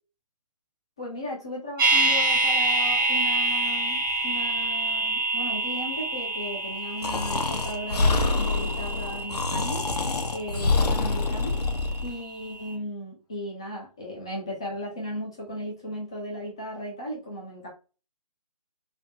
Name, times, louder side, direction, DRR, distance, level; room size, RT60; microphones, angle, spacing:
voice 1, 1.0-9.8 10.3-11.5 12.0-17.7, equal, 10° left, -3 dB, 0.3 m, -36 dB
sound 1, 1.8-11.8 12.1-12.2, right 2 dB, 35° right, 0.7 m, -27 dB
Breathing, 7.0-12.1, left 3 dB, 80° left, 0.6 m, -26 dB
3.2 x 2.0 x 2.9 m, 0.32 s
figure-of-eight pair, 150°, 20 cm